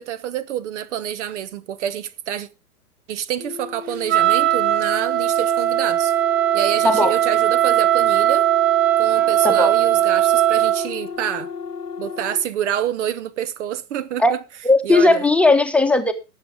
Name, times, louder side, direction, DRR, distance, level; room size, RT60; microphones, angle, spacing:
voice 1, 0.0-2.5 3.1-6.1 6.5-8.5 9.0-11.5 12.0-14.4 14.8-15.2, right 10 dB, 50° right, 0.9 m, -27 dB
sound 1, 3.4-12.5, left 6 dB, 90° left, 1.1 m, -33 dB
Wind instrument woodwind instrument, 4.1-10.9, right 14 dB, 20° right, 0.6 m, -18 dB
voice 2, 14.6-16.1, left 2 dB, 5° left, 1.0 m, -16 dB
18.0 x 7.4 x 3.5 m
figure-of-eight pair, 105°, 46 cm